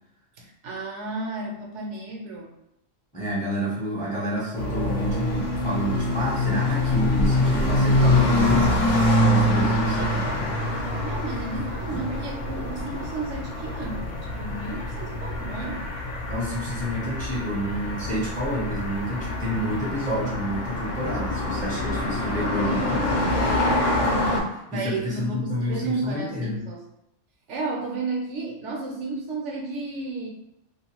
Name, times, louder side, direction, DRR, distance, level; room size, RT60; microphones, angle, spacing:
voice 1, 0.4-2.5 10.8-14.1 14.4-15.8 24.7-26.8 27.5-30.3, right 3 dB, 75° right, -1 dB, 0.9 m, -32 dB
voice 2, 3.1-8.8 9.2-10.4 16.3-23.6 24.0-26.6, equal, 10° left, -6 dB, 0.6 m, -29 dB
sound 1, 4.5-24.4, left 1 dB, 60° left, 0.8 m, -25 dB
2.5 x 2.2 x 2.9 m, 0.82 s
omnidirectional pair, 1.3 m